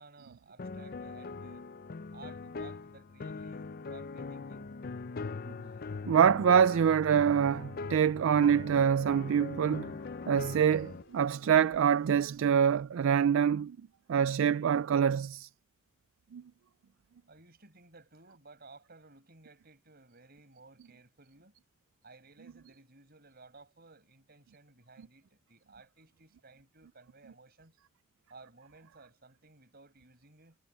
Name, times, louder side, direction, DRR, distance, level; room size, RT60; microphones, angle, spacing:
voice 1, 0.0-1.7 2.1-4.7 17.3-21.5 22.0-27.8 28.3-30.6, right 3 dB, 45° right, 6.3 m, -56 dB
sound 1, 0.6-11.0, left 4 dB, 45° left, 0.5 m, -41 dB
voice 2, 6.1-9.9 10.3-13.8 14.1-15.5 16.3-16.4, right 8 dB, 65° right, 0.3 m, -25 dB
Sliding door, 9.9-12.9, left 2 dB, 60° left, 4.8 m, -63 dB
head